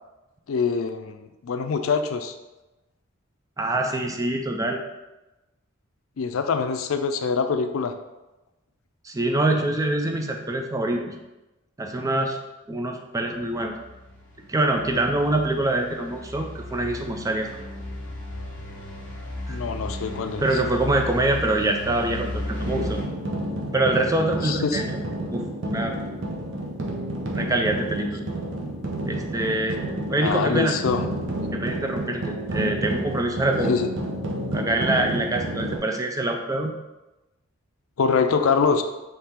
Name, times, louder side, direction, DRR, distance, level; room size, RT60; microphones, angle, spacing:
voice 1, 0.5-2.3 6.2-7.9 19.5-20.4 24.4-24.8 30.2-31.0 33.7-33.9 38.0-38.8, left 5 dB, 75° left, 8 dB, 0.4 m, -24 dB
voice 2, 3.6-4.8 9.0-11.2 11.8-12.4 12.7-13.8 14.5-17.5 19.5-19.6 20.4-23.0 23.7-26.0 27.3-28.3 29.1-29.8 30.1-30.8 31.5-33.8 34.5-36.7, right 2 dB, 15° right, 3 dB, 0.4 m, -25 dB
sound 1, 13.3-23.0, left 1 dB, 10° left, 1.2 m, -35 dB
sound 2, 22.6-35.8, right 1 dB, 60° right, 0.7 m, -30 dB
3.7 x 3.2 x 4.4 m, 1.0 s
head